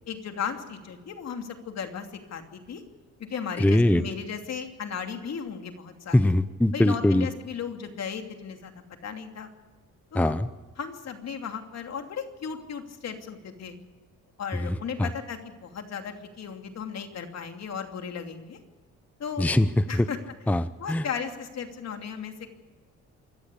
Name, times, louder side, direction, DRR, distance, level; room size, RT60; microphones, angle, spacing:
voice 1, 0.1-2.8 3.2-6.3 6.7-9.5 10.1-10.3 10.8-13.8 14.4-18.6 19.2-19.5 19.9-20.2 20.8-22.5, left 6 dB, 60° left, 5 dB, 2.8 m, -36 dB
voice 2, 3.6-4.0 6.1-7.3 10.1-10.5 14.5-15.1 19.4-20.1 20.5-21.0, left 1 dB, 5° left, 14 dB, 0.7 m, -22 dB
24.5 x 14.0 x 8.4 m, 1.2 s
cardioid pair, 90°, 30 cm